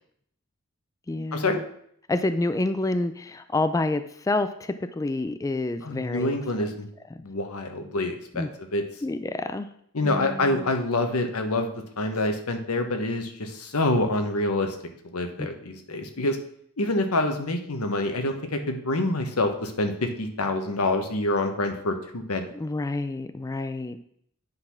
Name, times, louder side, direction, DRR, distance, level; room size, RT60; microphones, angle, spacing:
voice 1, 1.1-1.6 2.1-6.7 7.1-7.2 8.3-8.5 9.0-9.7 10.0-10.7 15.4-15.5 22.5-24.0, left 2 dB, 15° left, 10 dB, 0.3 m, -28 dB
voice 2, 5.8-6.9 7.2-8.8 9.9-11.7 12.0-14.8 15.1-16.4 16.8-22.4, left 2 dB, 90° left, 6 dB, 1.1 m, -26 dB
8.9 x 4.1 x 5.7 m, 0.68 s
head